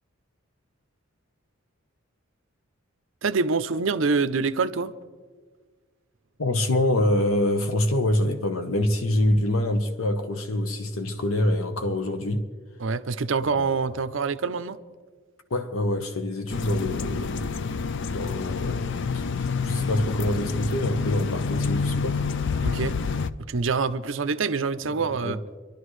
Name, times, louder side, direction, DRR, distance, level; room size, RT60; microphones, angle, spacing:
voice 1, 3.2-4.9 12.8-14.8 22.6-23.0 23.5-25.4, right 4 dB, 65° right, 0.6 m, -25 dB
voice 2, 6.4-12.4 13.5-13.7 15.5-17.5 18.1-18.8 19.1-19.2 19.6-22.3 25.2-25.4, left 1 dB, 85° left, 1.0 m, -25 dB
sound 1, 16.5-23.3, left 5 dB, 60° left, 0.4 m, -28 dB
26.0 x 12.0 x 3.2 m
head